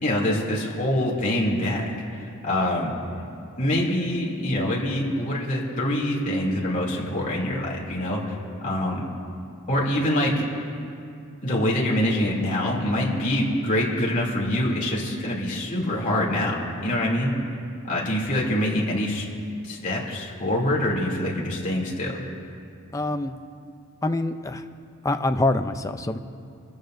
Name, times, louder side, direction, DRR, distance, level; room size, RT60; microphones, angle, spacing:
voice 1, 0.0-2.9 3.6-9.0 9.7-10.5 11.4-16.6 16.8-17.3 17.8-19.3 19.6-22.2, left 1 dB, 35° left, -4 dB, 2.8 m, -25 dB
voice 2, 22.9-23.3 24.0-24.6 25.0-26.2, left 2 dB, 15° left, 8 dB, 0.5 m, -25 dB
25.5 x 14.0 x 2.6 m, 2.5 s
head